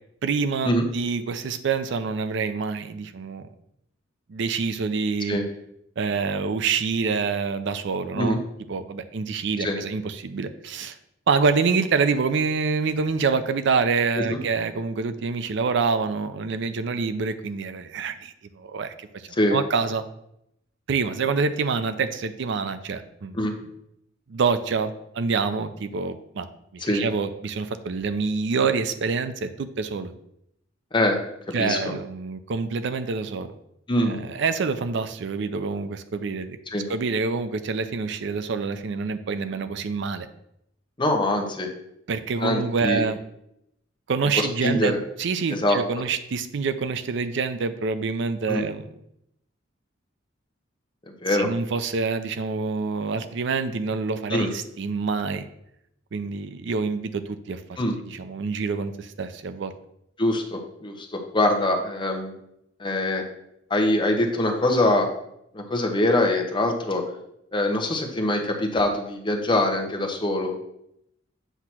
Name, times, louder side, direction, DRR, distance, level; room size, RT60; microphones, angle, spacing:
voice 1, 0.2-3.5 4.3-5.4 6.0-8.4 8.7-11.0 11.3-20.0 20.9-23.4 24.3-26.5 26.7-30.1 31.5-33.5 34.0-36.6 36.9-40.3 42.1-43.2 44.1-48.8 51.3-55.4 56.1-57.6 58.0-59.7, right 4 dB, 65° right, 10 dB, 0.4 m, -26 dB
voice 2, 33.9-34.2 36.7-36.8 41.0-41.7 42.4-43.0 44.3-45.0 45.5-45.8 48.5-48.6 51.2-51.5 54.3-54.5 57.8-58.0 60.2-62.3 62.8-63.3 63.7-65.1 65.5-67.0 67.5-70.6, left 1 dB, 25° left, 3 dB, 0.9 m, -23 dB
7.9 x 2.9 x 5.9 m, 0.78 s
head